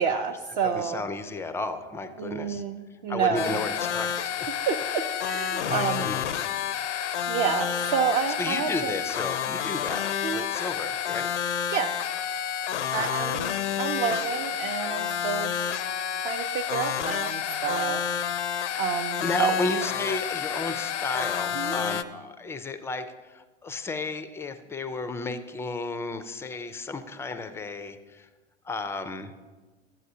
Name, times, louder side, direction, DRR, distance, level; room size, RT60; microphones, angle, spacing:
voice 1, 0.0-1.0 2.2-3.6 4.7-6.1 7.3-8.9 10.2-10.5 11.7-12.0 12.9-15.5 16.2-18.0 18.3-18.5 18.8-19.7 21.5-21.8, right 6 dB, 45° right, 3 dB, 0.6 m, -29 dB
voice 2, 0.6-2.6 3.1-4.5 5.5-6.3 8.4-11.3 12.9-13.4 19.2-28.3 28.6-29.3, left 3 dB, 10° left, 10 dB, 0.3 m, -33 dB
sound 1, 3.4-22.0, left 9 dB, 85° left, 0.5 m, -30 dB
12.5 x 7.6 x 2.7 m, 1.3 s
hypercardioid pair, 95°, 35 cm